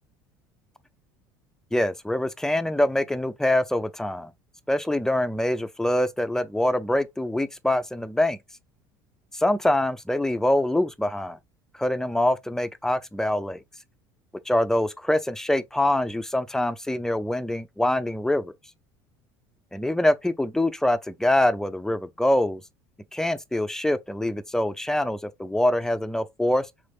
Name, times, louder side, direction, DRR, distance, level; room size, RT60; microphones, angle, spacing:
voice 1, 1.7-4.3 4.7-8.4 9.4-11.4 11.8-13.6 14.5-18.5 19.7-22.6 23.1-26.7, left 1 dB, 5° left, 0.5 m, -24 dB
3.7 x 3.3 x 2.4 m
hypercardioid pair, 80°, 11 cm